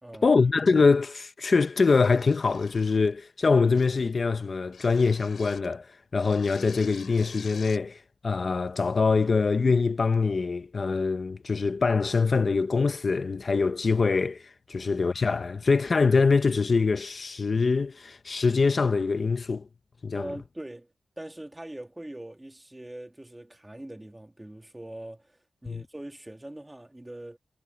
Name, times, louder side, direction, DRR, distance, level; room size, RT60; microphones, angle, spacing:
voice 1, 0.2-19.6 20.0-20.3 25.7-25.8, left 4 dB, 40° left, 0.6 m, -24 dB
sound 1, 1.8-3.1 3.7-4.1 4.7-5.7 6.2-7.9, left 6 dB, 65° left, 4.5 m, -48 dB
voice 2, 20.1-27.4, right 1 dB, 10° right, 2.2 m, -42 dB
wide cardioid pair, 130°, 0 cm